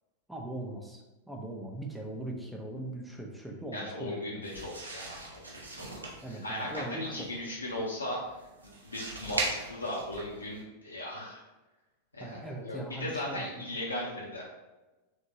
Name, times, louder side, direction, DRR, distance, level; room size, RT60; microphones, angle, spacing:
voice 1, 0.3-4.4 6.2-7.3 12.2-13.7, right 1 dB, 5° right, 1 dB, 0.6 m, -40 dB
voice 2, 3.7-5.9 6.3-8.2 8.6-11.4 12.1-14.5, left 1 dB, 80° left, -5 dB, 0.6 m, -37 dB
sound 1, 4.4-10.6, right 2 dB, 80° right, 0.7 m, -40 dB
3.6 x 2.8 x 2.7 m, 1.1 s
figure-of-eight pair, 90°, 0 cm